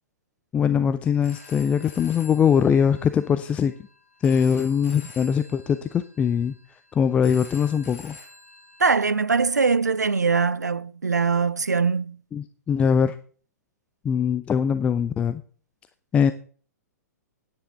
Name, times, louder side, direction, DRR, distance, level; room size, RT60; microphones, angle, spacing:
voice 1, 0.5-3.7 4.2-6.5 6.9-8.2 12.3-13.2 14.0-15.4 16.1-16.3, left 7 dB, 15° left, 0.4 m, -22 dB
Telephone, 1.0-8.9, left 4 dB, 50° left, 3.1 m, -48 dB
voice 2, 8.8-12.2, right 5 dB, 80° right, 0.4 m, -22 dB
10.0 x 9.6 x 3.8 m
figure-of-eight pair, 110°, 9 cm